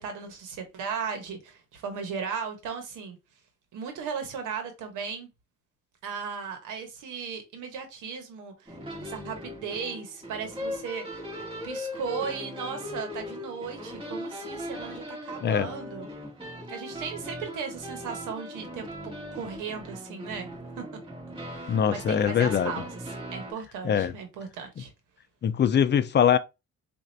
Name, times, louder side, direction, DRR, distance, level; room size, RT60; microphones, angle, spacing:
voice 1, 0.0-3.2 3.7-5.3 6.0-11.2 11.6-16.1 16.7-20.5 20.8-20.9 21.4-22.9 23.3-24.9, right 6 dB, 90° right, 1.1 m, -36 dB
sound 1, 8.7-23.5, equal, 15° right, 2.2 m, -39 dB
voice 2, 21.7-22.7 23.8-24.1 25.4-26.4, left 8 dB, 35° left, 0.5 m, -22 dB
4.2 x 2.6 x 2.6 m
cardioid pair, 90°, 30 cm